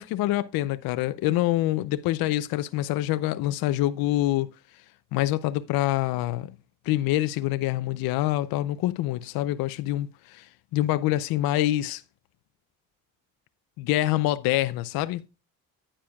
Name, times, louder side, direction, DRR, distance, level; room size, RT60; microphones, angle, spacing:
voice 1, 0.0-4.5 5.1-6.5 6.9-12.0 13.8-15.2, left 15 dB, 75° left, 0.5 m, -26 dB
9.6 x 8.8 x 2.3 m
cardioid pair, 135°, 36 cm